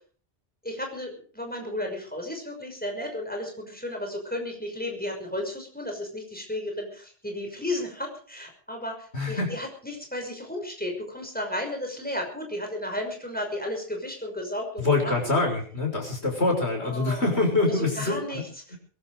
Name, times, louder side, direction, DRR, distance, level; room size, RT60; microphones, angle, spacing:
voice 1, 0.6-15.1 16.8-18.8, left 1 dB, 10° left, 2 dB, 5.9 m, -34 dB
voice 2, 9.1-9.5 14.8-18.4 18.7-18.8, left 3 dB, 70° left, 2 dB, 6.4 m, -25 dB
23.0 x 12.5 x 5.0 m, 0.42 s
omnidirectional pair, 1.1 m